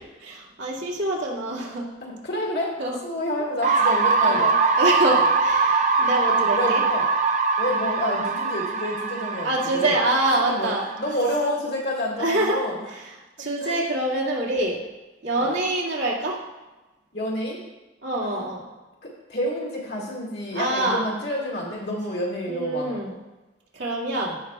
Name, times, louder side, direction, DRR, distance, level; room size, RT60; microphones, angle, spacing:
voice 1, 0.2-1.9 2.8-3.0 3.7-3.9 4.2-6.8 7.7-8.1 9.4-10.8 12.2-12.6 12.9-14.8 15.2-16.4 18.0-18.7 20.5-21.0 22.5-23.2 23.7-24.4, right 2 dB, 80° right, -4 dB, 2.2 m, -26 dB
voice 2, 2.0-2.7 3.0-4.6 5.1-5.3 6.4-7.1 7.6-10.0 10.4-10.7 11.0-12.7 13.6-13.8 15.3-15.5 17.1-17.6 18.2-18.5 19.0-23.0, left 1 dB, 60° left, -3 dB, 2.1 m, -29 dB
sound 1, 3.6-11.5, right 4 dB, 40° right, 0.5 m, -22 dB
16.0 x 6.0 x 2.4 m, 1.1 s
head